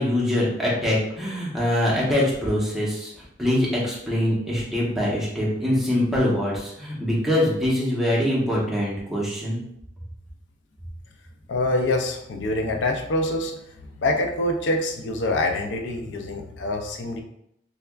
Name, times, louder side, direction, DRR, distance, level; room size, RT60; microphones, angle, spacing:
voice 1, 0.0-3.1 3.4-9.6, left 1 dB, ahead, -6 dB, 0.8 m, -23 dB
voice 2, 11.5-13.6 14.0-17.2, left 2 dB, 75° left, 3 dB, 0.4 m, -25 dB
3.4 x 3.3 x 2.3 m, 0.77 s
head